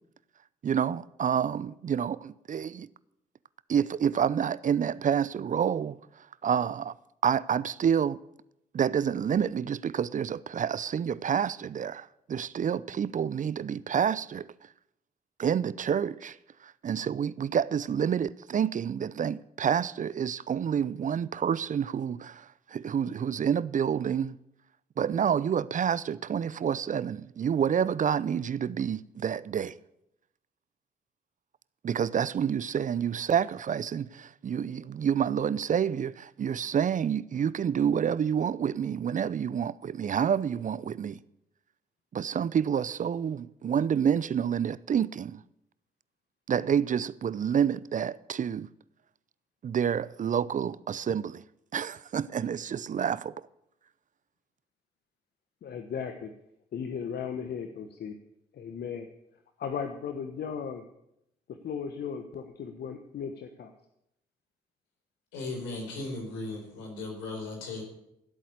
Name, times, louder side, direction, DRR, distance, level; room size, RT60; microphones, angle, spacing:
voice 1, 0.6-2.9 3.7-6.9 7.2-8.2 8.7-14.5 15.4-16.4 16.6-24.4 25.0-29.8 31.8-41.2 42.1-45.4 46.5-48.7 49.6-51.4 51.7-53.5, right 8 dB, 45° right, 0.6 m, -28 dB
voice 2, 55.6-56.3 56.7-58.2 58.5-59.1 59.6-60.8 61.5-63.7, left 7 dB, 60° left, 1.2 m, -36 dB
voice 3, 65.3-67.8, left 2 dB, 80° left, 4.4 m, -37 dB
15.5 x 8.4 x 8.1 m
hypercardioid pair, 45°, 19 cm